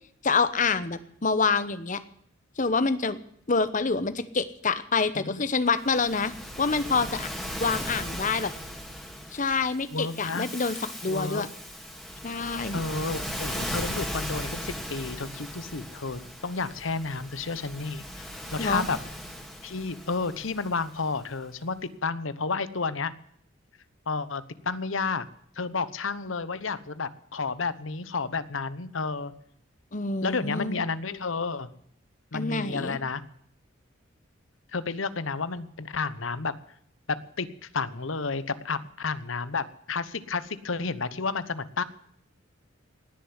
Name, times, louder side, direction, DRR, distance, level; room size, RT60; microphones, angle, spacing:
voice 1, 0.2-2.0 2.6-3.2 3.5-6.3 6.6-7.3 7.6-8.5 9.3-10.8 11.0-11.5 12.2-12.8 18.6-18.9 29.9-30.8 32.3-33.0, left 4 dB, 40° left, 13 dB, 1.0 m, -26 dB
Waves surf, 5.8-21.3, equal, ahead, 2.5 m, -38 dB
voice 2, 9.9-10.5 11.1-11.5 12.7-19.0 19.6-23.1 24.1-25.3 25.6-29.3 30.2-31.7 32.3-33.2 34.7-36.5 37.1-37.5 37.7-41.8, left 4 dB, 80° left, 15 dB, 1.0 m, -31 dB
19.0 x 7.0 x 9.5 m, 0.68 s
head